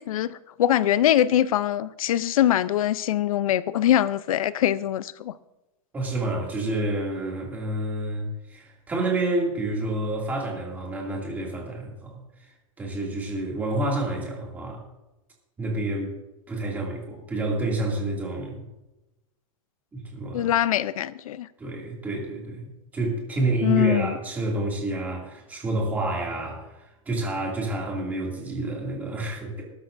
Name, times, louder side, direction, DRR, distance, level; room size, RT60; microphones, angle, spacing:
voice 1, 0.0-5.3 20.3-21.5 23.6-24.1, left 12 dB, 85° left, 17 dB, 0.6 m, -23 dB
voice 2, 5.9-12.5 12.8-14.8 15.6-16.1 16.5-18.6 19.9-20.5 21.6-29.6, right 2 dB, 10° right, -2 dB, 2.4 m, -29 dB
19.5 x 12.0 x 2.6 m, 0.98 s
supercardioid pair, 175°, 17 cm